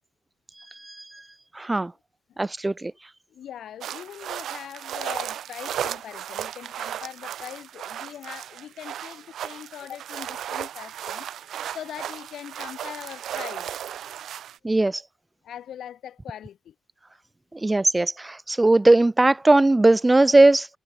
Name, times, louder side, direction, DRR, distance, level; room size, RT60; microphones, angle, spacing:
voice 1, 1.6-1.9 2.4-2.9 14.6-15.0 17.6-20.7, right 2 dB, 15° right, 0.4 m, -18 dB
voice 2, 3.3-11.3 11.7-13.7 15.4-16.7, left 10 dB, 80° left, 4.8 m, -41 dB
sound 1, 3.8-14.6, right 10 dB, 85° right, 2.0 m, -35 dB
wide cardioid pair, 165°, 0 cm